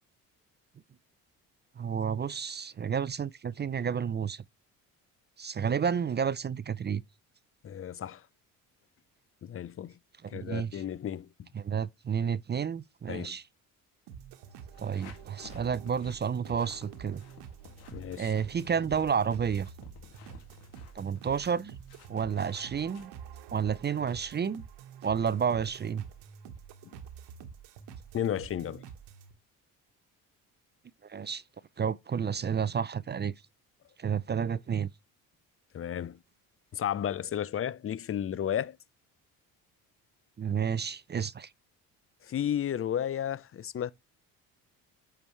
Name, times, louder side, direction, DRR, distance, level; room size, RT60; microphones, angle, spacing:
voice 1, 1.8-4.4 5.4-7.0 10.2-10.8 11.5-13.4 14.8-17.2 18.2-19.7 20.9-21.7 22.1-23.1 23.5-24.6 25.0-26.0 31.0-31.4 31.8-33.3 34.0-34.9 40.4-41.5, right 7 dB, 25° right, 0.5 m, -31 dB
voice 2, 7.6-8.3 9.4-10.0 10.3-11.5 13.1-13.4 17.9-18.3 26.8-27.0 28.1-28.8 35.7-36.2 36.7-38.8 42.2-43.9, left 10 dB, 35° left, 0.6 m, -33 dB
sound 1, 14.1-29.3, right 7 dB, 80° right, 1.3 m, -48 dB
sound 2, 14.7-23.1, left 6 dB, 80° left, 2.4 m, -54 dB
8.7 x 4.7 x 3.2 m
supercardioid pair, 75°, 38 cm